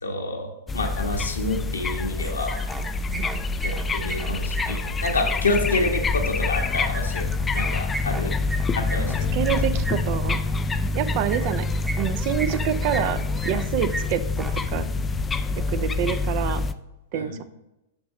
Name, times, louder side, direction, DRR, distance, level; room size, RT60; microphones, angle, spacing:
voice 1, 0.0-2.6 3.6-7.2 7.5-8.3 8.7-9.2 17.1-17.4, left 2 dB, 80° left, 2 dB, 1.3 m, -28 dB
sound 1, 0.7-16.7, left 3 dB, 15° left, 0.4 m, -26 dB
sound 2, 2.2-2.8 3.1-5.1 6.5-9.9 11.3-11.5 11.8-12.6 12.9-13.6 13.9-14.0 14.3-14.5, right 2 dB, 10° right, 0.9 m, -34 dB
voice 2, 9.0-10.4 10.9-11.7 12.0-14.9 15.7-16.6 17.1-17.4, right 10 dB, 45° right, 11 dB, 0.5 m, -27 dB
8.6 x 6.3 x 3.1 m, 0.94 s
figure-of-eight pair, 105°, 0 cm